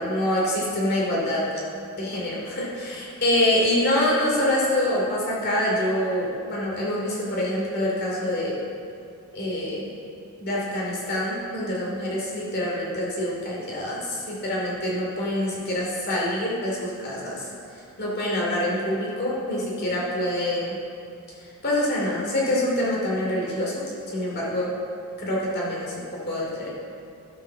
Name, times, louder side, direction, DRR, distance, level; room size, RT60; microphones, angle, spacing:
voice 1, 0.0-1.4 2.0-8.5 9.3-9.9 10.4-17.5 18.0-20.7 21.6-23.8 24.1-24.7 25.2-25.9 26.3-26.7, left 1 dB, 45° left, -5 dB, 2.6 m, -25 dB
12.5 x 5.7 x 5.9 m, 2.5 s
head